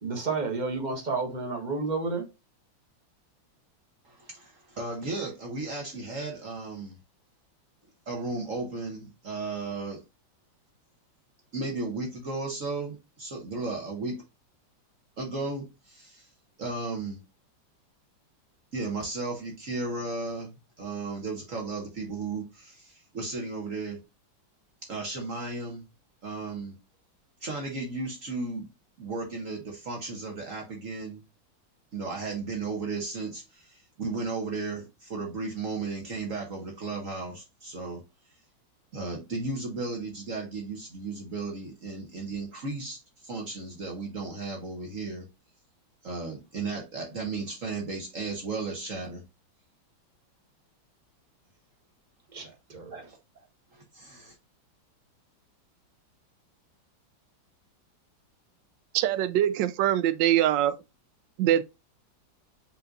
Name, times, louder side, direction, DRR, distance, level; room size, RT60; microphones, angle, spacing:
voice 1, 0.0-2.3 52.3-53.0, right 4 dB, 25° right, 1.2 m, -31 dB
voice 2, 4.0-7.0 8.1-10.0 11.5-14.2 15.2-16.3 16.6-17.2 18.7-24.0 24.8-25.8 26.2-26.7 27.4-28.7 29.0-31.2 31.9-38.0 38.9-45.3 46.0-49.2 52.9-53.2 53.7-54.3, right 3 dB, 45° right, 1.3 m, -35 dB
voice 3, 58.9-60.7 61.4-61.6, right 12 dB, 75° right, 1.2 m, -23 dB
5.5 x 3.8 x 2.5 m
omnidirectional pair, 2.1 m